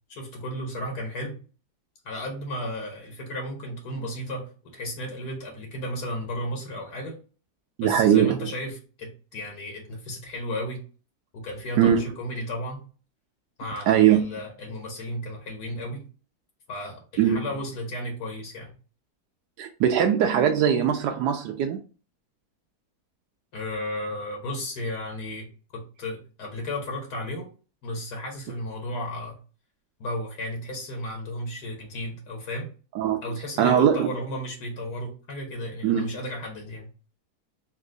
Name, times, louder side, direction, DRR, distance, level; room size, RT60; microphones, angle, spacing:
voice 1, 0.1-1.4 2.1-4.5 4.7-7.2 7.8-10.8 11.3-12.8 13.6-16.0 16.7-18.7 23.5-25.5 25.7-27.5 27.8-29.4 30.0-32.7 33.2-36.9, left 1 dB, 75° left, 1.7 m, -34 dB
voice 2, 7.8-8.4 11.8-12.0 13.9-14.3 17.2-17.4 19.6-21.8 33.0-33.2 33.6-34.1 35.8-36.1, right 9 dB, 90° right, 1.2 m, -21 dB
4.3 x 2.7 x 3.8 m
omnidirectional pair, 1.8 m